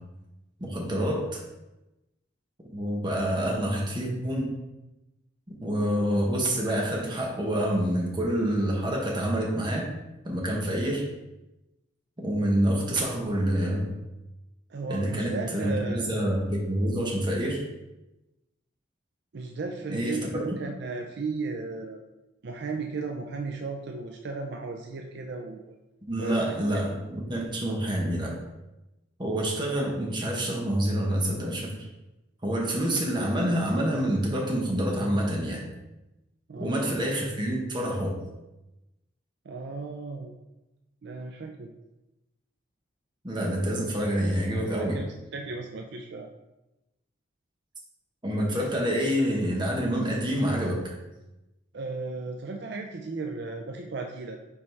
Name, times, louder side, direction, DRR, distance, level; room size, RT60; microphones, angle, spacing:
voice 1, 0.6-1.4 2.7-4.5 5.6-9.9 10.2-11.0 12.2-13.9 14.9-17.6 19.9-20.6 26.1-28.4 29.2-31.7 32.4-35.6 36.6-38.2 43.2-45.0 48.2-50.9, right 1 dB, 25° right, -2 dB, 1.3 m, -27 dB
voice 2, 14.7-16.0 19.3-22.0 22.4-25.8 26.2-26.8 36.5-36.9 39.5-40.3 41.0-41.7 44.5-46.3 51.7-54.4, right 3 dB, 60° right, 2 dB, 0.5 m, -35 dB
5.4 x 4.2 x 4.6 m, 0.99 s
head